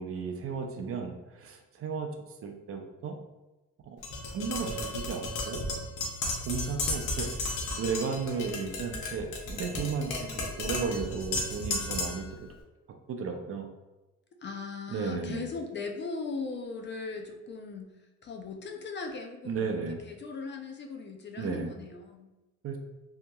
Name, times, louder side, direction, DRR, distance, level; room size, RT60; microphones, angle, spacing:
voice 1, 0.0-2.1 2.4-3.2 3.9-4.0 4.3-5.6 6.5-7.3 7.8-12.5 13.1-13.7 14.9-15.4 19.4-20.0 21.4-21.7 22.6-22.8, right 5 dB, 50° right, 3 dB, 0.5 m, -34 dB
Tap, 4.0-12.3, left 2 dB, 85° left, 0.7 m, -34 dB
voice 2, 14.4-22.3, left 4 dB, 40° left, 3 dB, 0.4 m, -39 dB
2.8 x 2.7 x 2.2 m, 1.0 s
cardioid pair, 90°, 30 cm